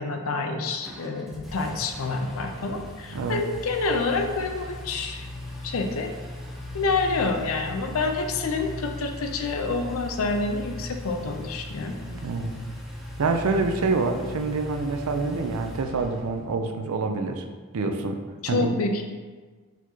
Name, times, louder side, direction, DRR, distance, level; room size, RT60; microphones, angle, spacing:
voice 1, 0.0-5.3 5.6-6.1 6.7-12.0 18.4-19.0, left 3 dB, 75° left, 5 dB, 0.5 m, -28 dB
Engine, 0.8-16.5, left 1 dB, ahead, 0.5 m, -38 dB
voice 2, 12.1-12.5 13.2-17.4 17.7-18.2 18.5-18.7, right 3 dB, 80° right, 5 dB, 0.5 m, -26 dB
4.6 x 4.1 x 2.8 m, 1.4 s
head